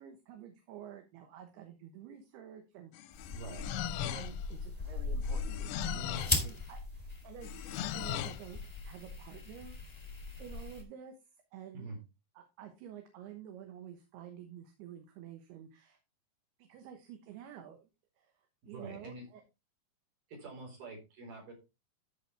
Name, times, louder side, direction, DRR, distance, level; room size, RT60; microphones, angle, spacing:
voice 1, 0.0-3.2 4.1-9.8 10.4-11.1 11.5-11.9 12.4-16.0 16.6-17.9 18.2-18.3 18.7-19.4, right 10 dB, 75° right, 5 dB, 2.9 m, -50 dB
sound 1, 2.9-4.5 5.2-6.5 7.4-8.5, left 11 dB, 85° left, 2.9 m, -39 dB
sound 2, 3.1-10.8, left 3 dB, 25° left, 0.6 m, -39 dB
voice 2, 3.3-3.7 11.7-12.0 18.6-19.3 20.3-21.5, right 2 dB, 55° right, -1 dB, 5.8 m, -46 dB
13.0 x 5.5 x 3.3 m, 0.27 s
omnidirectional pair, 5.0 m